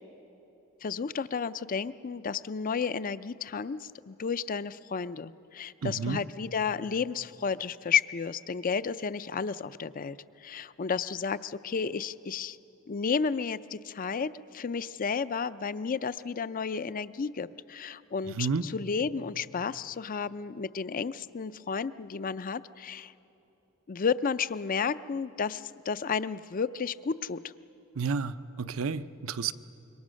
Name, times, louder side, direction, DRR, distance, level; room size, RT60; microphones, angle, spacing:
voice 1, 0.8-12.6 12.9-23.1 23.9-27.4, left 6 dB, 40° left, 15 dB, 0.4 m, -32 dB
voice 2, 5.8-6.2 18.4-18.7 28.0-29.5, right 5 dB, 65° right, 12 dB, 0.6 m, -31 dB
26.0 x 23.0 x 6.3 m, 3.0 s
head